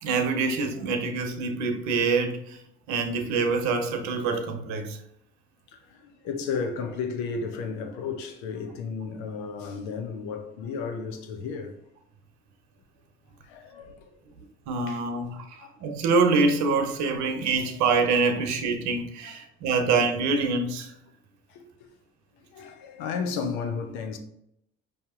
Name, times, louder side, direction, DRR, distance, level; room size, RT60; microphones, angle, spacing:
voice 1, 0.0-2.6 2.9-5.0 14.7-20.9, right 4 dB, 70° right, 0.9 m, -25 dB
voice 2, 5.7-11.8 13.4-14.1 14.9-15.2 15.6-15.7 18.3-18.4 19.2-19.4 21.5-21.6 22.5-24.2, left 5 dB, 80° left, 0.8 m, -33 dB
5.2 x 2.8 x 3.6 m
supercardioid pair, 65°, 29 cm